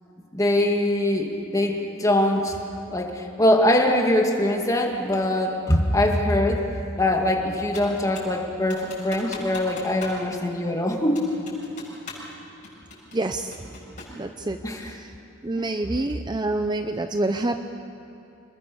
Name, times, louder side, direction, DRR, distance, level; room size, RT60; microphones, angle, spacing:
voice 1, 0.3-2.6 2.9-6.6 6.9-11.3 14.6-15.0 15.6-15.7, left 1 dB, 15° left, 1 dB, 2.3 m, -22 dB
Computer keyboard, 7.7-8.4 8.7-10.2 10.5-10.6 11.1-12.3 12.6-14.2, left 3 dB, 40° left, 7.4 m, -40 dB
voice 2, 13.1-13.6 14.1-14.6 14.8-15.1 15.4-17.6, right 2 dB, 20° right, 7 dB, 0.6 m, -27 dB
27.0 x 21.0 x 7.0 m, 2.9 s
head